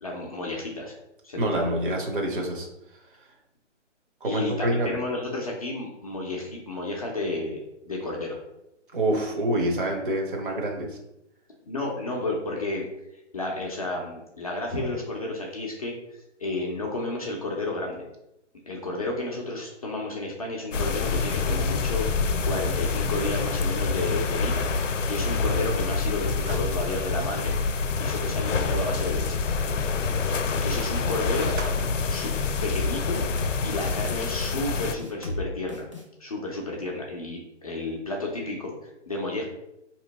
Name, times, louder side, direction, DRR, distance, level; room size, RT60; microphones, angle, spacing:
voice 1, 0.0-0.9 1.2-1.7 4.2-8.4 11.7-12.9 13.3-15.9 16.4-18.0 18.7-24.7 25.1-27.6 28.0-29.4 30.5-31.5 32.1-32.3 32.6-33.2 33.6-35.9 36.2-39.4, left 2 dB, 30° left, -2 dB, 0.5 m, -32 dB
voice 2, 1.4-2.7 4.2-4.9 8.9-11.0, right 1 dB, 45° right, 1 dB, 1.0 m, -26 dB
sound 1, 20.7-35.0, left 4 dB, 85° left, 0.5 m, -27 dB
sound 2, 26.4-26.8 27.2-27.3 31.0-31.8, right 2 dB, 80° right, 1.2 m, -34 dB
sound 3, 32.9-33.6 33.8-34.2 34.8-35.4 35.7-36.0, left 2 dB, 30° right, 0.3 m, -35 dB
4.0 x 2.9 x 2.8 m, 0.86 s
figure-of-eight pair, 150°, 36 cm